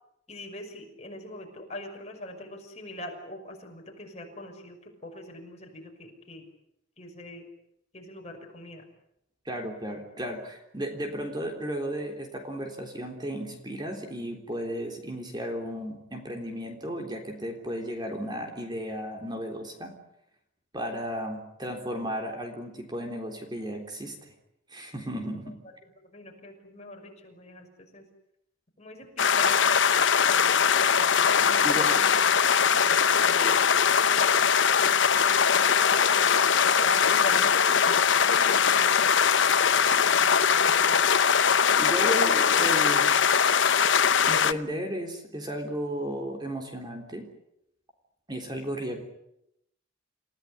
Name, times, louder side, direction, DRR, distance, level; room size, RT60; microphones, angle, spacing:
voice 1, 0.3-6.4 7.0-7.4 7.9-8.8 26.1-28.1 28.8-30.6 30.9-32.2 32.7-33.6 34.1-34.3 35.2-38.0 38.2-41.0, left 1 dB, 35° left, 2 dB, 6.0 m, -41 dB
voice 2, 9.5-20.0 20.7-24.3 24.7-25.5 31.6-31.9 41.8-43.1 44.3-47.3 48.3-49.0, equal, 20° right, 3 dB, 3.7 m, -34 dB
sound 1, 29.2-44.5, left 7 dB, 65° left, 0.9 m, -21 dB
29.0 x 16.5 x 10.0 m, 0.80 s
head